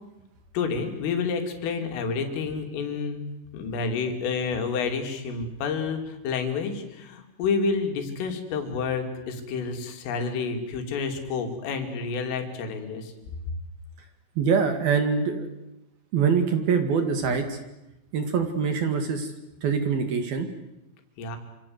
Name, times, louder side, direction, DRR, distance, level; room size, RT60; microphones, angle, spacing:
voice 1, 0.5-3.3 3.5-13.1 21.2-21.4, left 5 dB, 80° left, 5 dB, 5.5 m, -29 dB
voice 2, 14.4-15.5 16.1-17.6 18.1-19.3 19.6-20.5, right 6 dB, 55° right, 7 dB, 3.3 m, -24 dB
27.0 x 26.5 x 8.0 m, 0.93 s
omnidirectional pair, 5.8 m